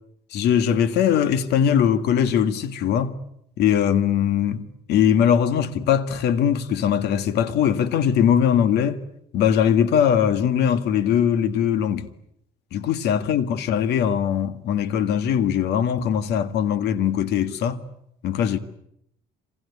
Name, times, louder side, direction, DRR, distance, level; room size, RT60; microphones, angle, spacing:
voice 1, 0.3-3.2 3.6-9.0 9.3-12.1 12.7-17.8 18.2-18.6, left 8 dB, 80° left, 1.9 m, -21 dB
26.5 x 26.5 x 8.4 m
cardioid pair, 110°, 17 cm